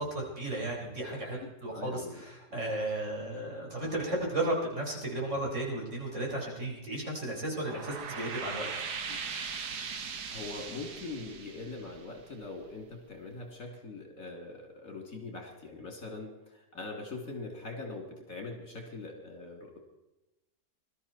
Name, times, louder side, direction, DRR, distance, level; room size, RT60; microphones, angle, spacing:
voice 1, 0.0-8.7, right 1 dB, 45° right, -2 dB, 4.9 m, -34 dB
voice 2, 1.4-2.3 2.5-2.6 9.1-9.8 10.3-19.8, left 3 dB, 55° left, 2 dB, 3.8 m, -43 dB
sound 1, 7.5-12.7, right 5 dB, 70° right, 1.9 m, -39 dB
20.5 x 13.0 x 4.5 m, 0.99 s
omnidirectional pair, 1.8 m